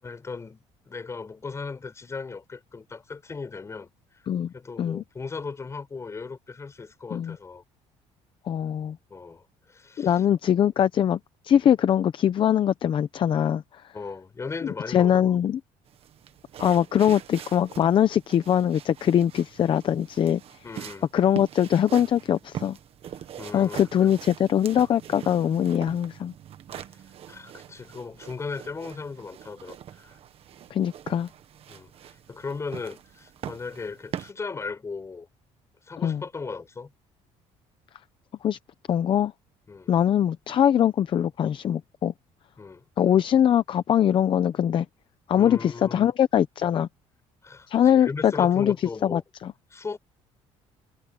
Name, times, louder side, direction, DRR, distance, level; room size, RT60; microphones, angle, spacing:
voice 1, 0.0-4.2 4.5-7.6 9.1-10.2 13.9-15.3 20.6-21.1 23.4-24.1 26.9-30.2 31.7-35.3 35.8-36.9 39.7-39.9 42.6-42.8 45.4-46.1 47.4-49.2 49.7-50.0, left 4 dB, 25° left, 6.4 m, -37 dB
voice 2, 8.5-9.0 10.0-11.2 11.4-13.6 14.9-15.6 16.6-20.4 21.1-22.8 23.5-26.3 30.7-31.3 36.0-36.2 38.4-38.6 38.9-39.3 39.9-42.1 43.0-44.9 45.3-46.9 47.7-49.5, left 9 dB, 45° left, 0.8 m, -22 dB
sound 1, 15.9-34.3, right 10 dB, 50° right, 1.6 m, -43 dB
cardioid pair, 135°, 12 cm